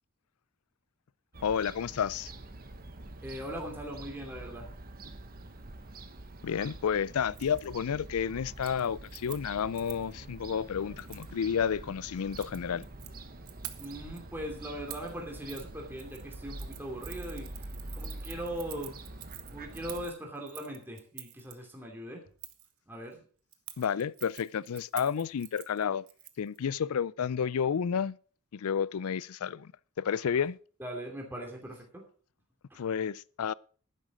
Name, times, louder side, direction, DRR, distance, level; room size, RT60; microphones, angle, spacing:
Fowl / Gull seagull, 1.3-20.1, right 2 dB, 40° right, 1.2 m, -46 dB
voice 1, 1.4-2.3 6.4-12.8 23.8-26.1 26.4-28.2 28.5-29.7 30.0-30.6 32.8-33.5, left 7 dB, 75° left, 0.4 m, -31 dB
voice 2, 3.2-4.7 13.8-17.5 17.9-19.0 19.5-22.2 22.9-23.2 30.8-32.0 32.7-32.8, equal, 10° right, 2.7 m, -40 dB
Keys jangling, 7.3-7.7 8.0-8.3 8.6-10.1 11.0-11.3 12.2-13.1 13.5-14.2 14.9-15.1 15.5-15.7 16.0-21.5 22.4-22.7 23.5-26.6 26.9-27.0, right 14 dB, 75° right, 1.2 m, -47 dB
11.5 x 10.0 x 5.0 m
head